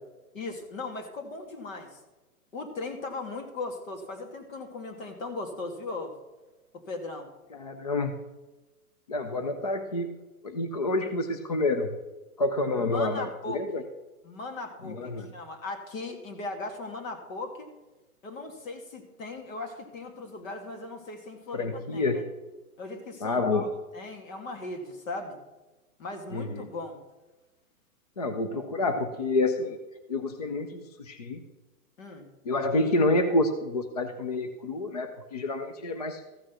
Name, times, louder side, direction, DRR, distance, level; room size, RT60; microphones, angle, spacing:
voice 1, 0.3-2.0 2.5-6.1 6.7-7.3 12.8-13.6 14.2-17.7 18.2-22.2 22.8-23.7 23.9-25.4 26.0-27.0 32.0-32.3, left 3 dB, 60° left, 4 dB, 2.5 m, -38 dB
voice 2, 7.5-8.1 9.1-10.1 10.4-11.9 12.4-13.8 14.8-15.3 21.5-22.2 23.2-23.7 26.3-26.7 28.2-29.8 30.1-31.4 32.5-36.2, left 2 dB, 30° left, 7 dB, 0.4 m, -28 dB
14.0 x 6.2 x 6.1 m, 1.1 s
hypercardioid pair, 155°, 45 cm